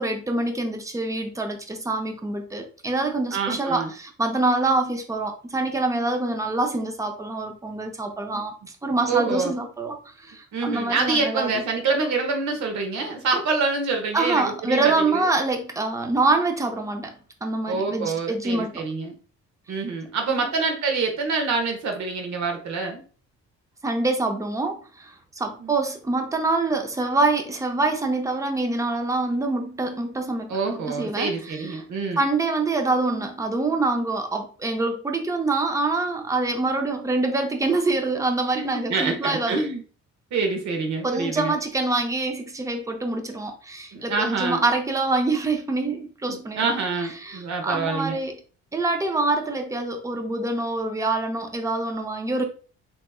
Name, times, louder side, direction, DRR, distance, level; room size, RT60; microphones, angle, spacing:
voice 1, 0.0-8.5 8.8-11.6 14.1-17.1 17.4-18.8 20.3-20.5 23.8-31.8 32.2-39.6 41.0-46.7 47.2-48.4 48.7-52.4, right 2 dB, 10° right, 0.6 m, -25 dB
voice 2, 3.3-3.9 8.3-8.4 9.1-9.5 10.5-15.2 17.7-19.1 19.7-23.0 25.6-25.7 30.5-32.2 38.5-39.8 40.3-41.5 43.9-44.6 46.3-48.2, right 4 dB, 65° right, 1.0 m, -26 dB
3.4 x 3.0 x 2.3 m
cardioid pair, 90°, 30 cm